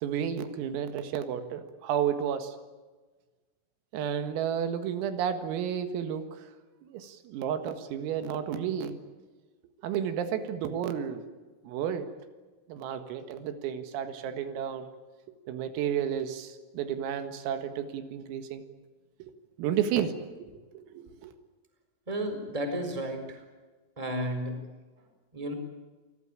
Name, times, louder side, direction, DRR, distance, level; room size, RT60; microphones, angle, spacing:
voice 1, 0.0-2.6 3.9-6.5 6.9-9.0 9.8-11.2 11.6-12.1 12.7-14.9 15.5-18.6 19.6-21.3, right 8 dB, 80° right, 9 dB, 4.4 m, -32 dB
voice 2, 22.1-23.4 24.0-24.5 25.3-25.5, right 1 dB, 5° right, 6 dB, 3.7 m, -32 dB
29.0 x 17.5 x 8.9 m, 1.3 s
omnidirectional pair, 5.9 m